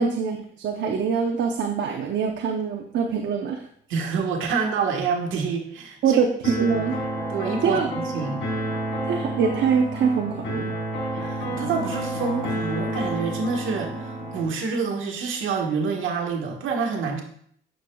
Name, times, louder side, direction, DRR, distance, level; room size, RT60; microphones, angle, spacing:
voice 1, 0.0-3.6 6.0-7.0 7.6-7.9 9.1-10.7, right 6 dB, 65° right, 3 dB, 0.8 m, -24 dB
voice 2, 3.9-6.2 6.7-6.9 7.3-8.4 11.1-17.2, right 5 dB, 85° right, 2 dB, 1.5 m, -27 dB
sound 1, 6.4-14.4, right 1 dB, 80° left, 3.3 m, -29 dB
9.9 x 6.5 x 2.3 m, 0.63 s
cardioid pair, 90°, 20 cm